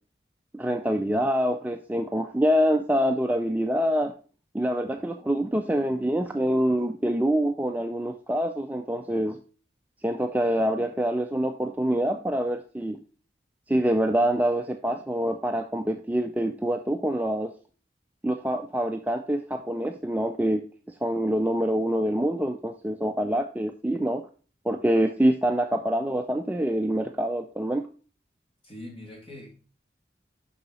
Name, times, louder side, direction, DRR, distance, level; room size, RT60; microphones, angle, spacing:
voice 1, 0.5-4.1 4.5-9.4 10.0-13.0 13.7-17.5 18.2-20.6 20.9-24.2 24.6-27.8, equal, 10° right, 5 dB, 0.3 m, -25 dB
voice 2, 28.6-29.5, left 1 dB, 30° left, -2 dB, 2.5 m, -42 dB
6.8 x 5.5 x 4.1 m, 0.38 s
head